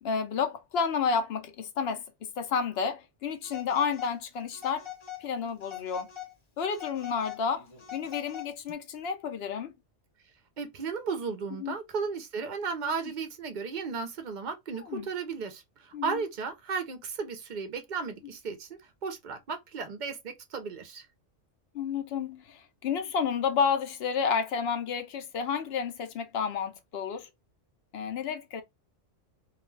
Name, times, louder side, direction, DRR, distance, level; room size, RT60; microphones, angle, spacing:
voice 1, 0.0-2.0 2.4-4.9 5.2-6.1 6.6-7.7 7.9-9.7 11.6-11.7 12.8-12.9 14.8-15.1 15.9-16.2 21.7-27.3 27.9-28.6, left 6 dB, 65° left, 0.8 m, -31 dB
Telephone, 3.4-4.2 4.5-5.3 5.6-6.3 6.7-8.7, left 12 dB, 30° left, 0.7 m, -42 dB
voice 2, 10.6-18.7 19.0-21.1, right 5 dB, 55° right, 0.6 m, -35 dB
2.4 x 2.2 x 3.1 m
omnidirectional pair, 1.2 m